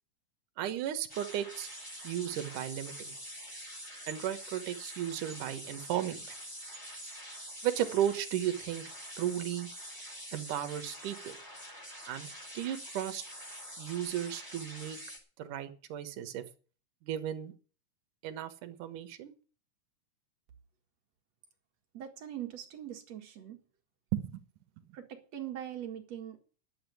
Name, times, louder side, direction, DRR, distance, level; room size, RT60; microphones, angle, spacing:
voice 1, 0.6-1.7 2.0-3.1 4.1-6.2 7.6-8.8 9.2-9.7 10.3-11.3 12.1-12.3 12.5-13.2 13.8-15.0 15.4-16.4 17.0-17.5 18.2-19.3 24.1-24.4, right 11 dB, 70° right, 10 dB, 2.8 m, -34 dB
sound 1, 1.1-15.2, equal, 5° left, 4.1 m, -45 dB
voice 2, 21.9-23.6 24.9-26.4, right 11 dB, 55° right, 4 dB, 3.0 m, -42 dB
11.0 x 8.0 x 9.4 m, 0.38 s
omnidirectional pair, 3.9 m